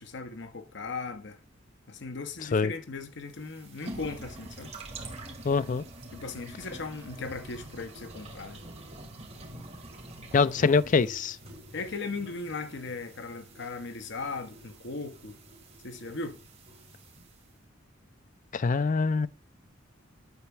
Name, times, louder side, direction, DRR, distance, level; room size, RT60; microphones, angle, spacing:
voice 1, 0.0-1.4 1.9-4.7 6.1-8.6 10.6-10.7 11.7-15.4 15.8-16.4, left 3 dB, 65° left, 1.0 m, -38 dB
sound 1, 3.2-17.5, right 1 dB, 35° right, 2.6 m, -46 dB
voice 2, 5.4-5.8 10.3-11.4 18.5-19.3, left 4 dB, 40° left, 0.4 m, -24 dB
10.5 x 4.3 x 7.1 m
head